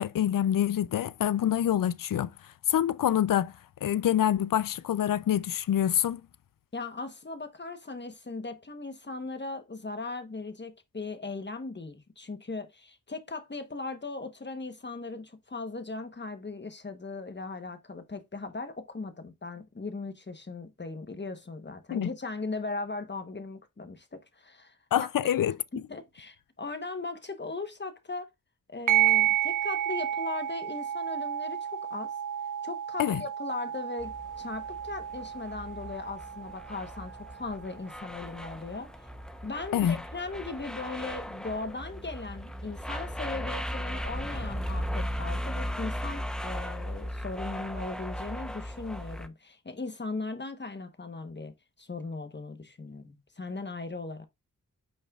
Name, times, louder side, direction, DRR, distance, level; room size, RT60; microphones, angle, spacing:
voice 1, 0.0-2.3 2.7-3.6 3.8-6.2 21.9-22.1 24.9-25.6 33.0-33.2 39.7-40.0, left 10 dB, 80° left, 0.5 m, -26 dB
voice 2, 6.7-25.3 25.7-28.3 28.7-32.1 32.6-38.9 39.4-54.2, left 3 dB, 35° left, 1.1 m, -38 dB
sound 1, 28.9-37.9, right 11 dB, 70° right, 0.7 m, -31 dB
sound 2, 34.0-49.3, equal, ahead, 0.8 m, -37 dB
8.8 x 5.3 x 2.4 m
wide cardioid pair, 75°, 32 cm